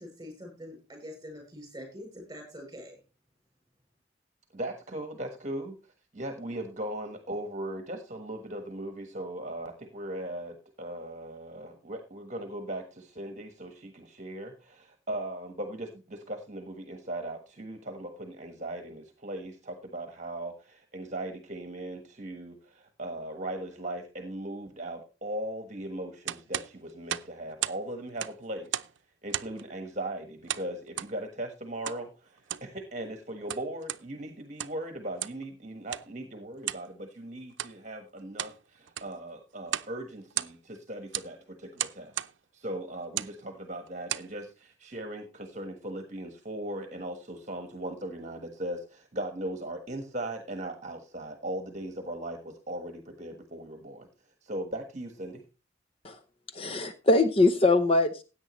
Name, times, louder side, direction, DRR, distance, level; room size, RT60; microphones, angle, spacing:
voice 1, 0.0-3.0, equal, 20° right, 3 dB, 7.3 m, -44 dB
voice 2, 4.5-5.8 6.1-28.8 29.2-42.2 42.5-54.1 54.4-55.4, right 1 dB, 40° right, 6 dB, 1.4 m, -38 dB
sound 1, 26.3-27.8 28.1-29.0 29.3-29.7 30.5-31.1 31.8-32.0 32.4-32.7 33.3-34.0 34.5-34.8 35.2-35.4 35.9-36.1 36.6-36.9 37.5-37.8 38.2-38.6 38.9-39.2 39.7-39.9 40.2-40.8 41.1-41.3 41.8-42.3 43.0-43.4 43.9-44.3, right 12 dB, 85° right, 0.6 m, -34 dB
voice 3, 56.5-58.2, left 2 dB, 30° left, 9 dB, 0.7 m, -23 dB
16.5 x 9.0 x 3.1 m, 0.31 s
head